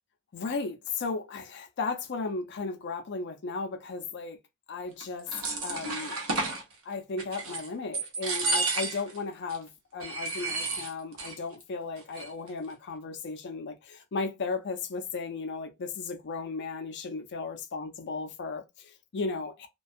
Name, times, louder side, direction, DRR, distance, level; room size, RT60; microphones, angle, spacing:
voice 1, 0.3-4.4 4.7-5.3 5.6-6.2 6.9-19.7, left 4 dB, 55° left, 0.5 m, -35 dB
sound 1, 5.0-6.6 7.2-7.7 7.9-9.2 9.5-9.6 10.0-11.4 11.6-11.7 12.0-12.5, right 3 dB, 75° right, 0.8 m, -31 dB
2.4 x 2.3 x 2.5 m
head